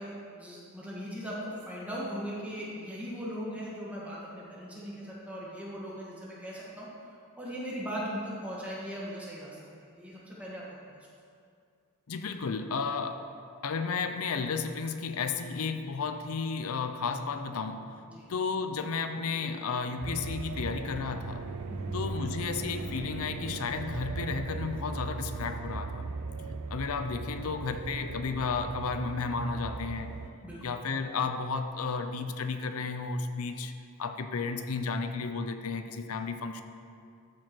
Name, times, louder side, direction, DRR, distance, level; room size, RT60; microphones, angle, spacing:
voice 1, 0.0-9.6 9.9-10.6 18.1-18.3 21.7-21.9 30.4-30.7, equal, 5° right, -6 dB, 1.7 m, -39 dB
voice 2, 12.1-13.3 13.6-18.0 18.3-21.5 21.9-26.1 26.7-30.2 30.6-33.7 34.0-36.6, left 4 dB, 70° left, 8 dB, 0.6 m, -33 dB
sound 1, 20.0-30.3, right 3 dB, 80° right, 0.5 m, -38 dB
13.5 x 4.8 x 4.5 m, 2.3 s
head